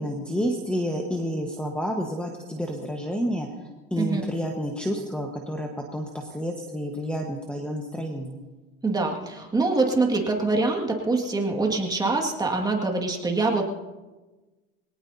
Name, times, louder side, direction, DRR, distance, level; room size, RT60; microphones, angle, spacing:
voice 1, 0.0-3.5 3.9-8.4, equal, 5° left, 1 dB, 1.3 m, -29 dB
voice 2, 8.8-13.6, right 3 dB, 15° right, 1 dB, 2.0 m, -24 dB
23.0 x 18.0 x 2.8 m, 1.2 s
supercardioid pair, 125°, 29 cm